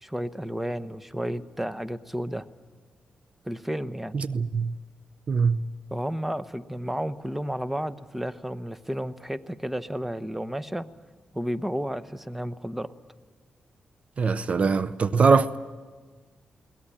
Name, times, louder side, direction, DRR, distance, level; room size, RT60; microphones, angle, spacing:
voice 1, 0.0-2.4 3.4-4.2 5.9-10.9 11.3-12.9, equal, 5° right, 0.9 m, -32 dB
voice 2, 4.1-4.8 5.3-5.7 14.2-15.6, right 5 dB, 50° right, 0.6 m, -22 dB
22.5 x 18.0 x 10.0 m
cardioid pair, 85°, 3 cm